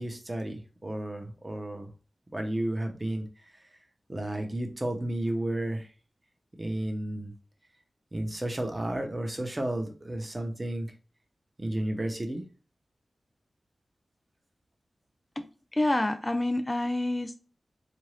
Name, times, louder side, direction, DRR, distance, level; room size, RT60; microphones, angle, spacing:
voice 1, 0.0-1.9 2.3-3.3 4.1-5.9 6.6-7.3 8.1-10.9 11.6-12.4, right 1 dB, 25° right, 0.7 m, -32 dB
voice 2, 15.4-17.4, left 1 dB, 20° left, 0.4 m, -28 dB
3.7 x 2.6 x 3.1 m
wide cardioid pair, 110°, 0 cm